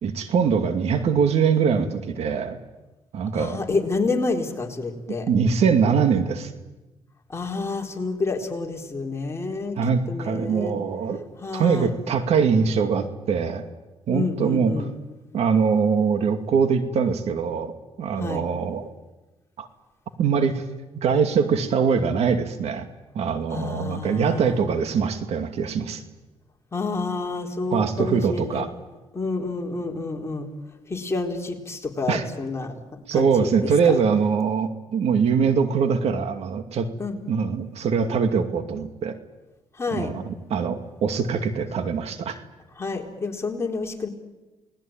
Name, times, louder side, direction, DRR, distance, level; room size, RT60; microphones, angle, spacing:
voice 1, 0.0-2.6 3.1-3.6 5.1-6.5 9.8-11.2 11.5-13.6 14.1-14.7 15.3-18.9 19.6-19.7 20.2-20.6 21.0-22.9 23.2-26.0 27.7-28.7 32.1-32.2 33.1-36.9 37.3-39.2 39.9-42.4, right 6 dB, 70° right, 7 dB, 2.4 m, -23 dB
voice 2, 3.3-5.3 7.3-9.8 10.1-10.8 11.4-11.9 14.1-14.9 18.2-18.4 23.5-24.6 26.7-28.6 29.1-30.5 30.9-32.8 33.1-33.7 37.0-37.2 39.7-40.1 42.8-44.1, left 3 dB, 25° left, 1 dB, 4.2 m, -29 dB
29.0 x 20.0 x 8.9 m, 1.1 s
cardioid pair, 105°, 11 cm